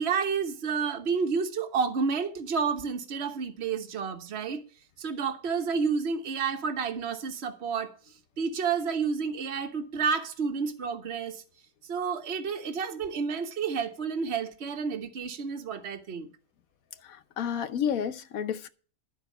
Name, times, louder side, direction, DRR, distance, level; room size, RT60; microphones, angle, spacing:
voice 1, 0.0-4.6 5.0-8.0 8.4-11.4 11.9-16.3, right 5 dB, 50° right, 1.3 m, -30 dB
voice 2, 17.0-18.7, left 8 dB, 90° left, 1.3 m, -31 dB
12.0 x 4.7 x 8.2 m
omnidirectional pair, 1.4 m